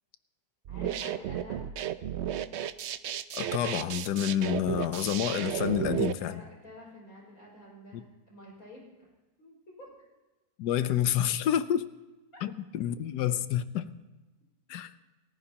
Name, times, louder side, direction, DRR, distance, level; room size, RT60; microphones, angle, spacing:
voice 1, 0.7-1.7 6.2-8.9 9.4-9.9, left 1 dB, 60° left, -3 dB, 6.0 m, -49 dB
sound 1, 0.7-6.1, right 10 dB, 65° right, 0.7 m, -33 dB
voice 2, 3.3-6.4 7.9-8.0 10.6-11.9 12.4-13.9 14.7-14.9, left 10 dB, 90° left, 13 dB, 1.3 m, -29 dB
28.5 x 14.5 x 2.9 m, 1.1 s
omnidirectional pair, 1.7 m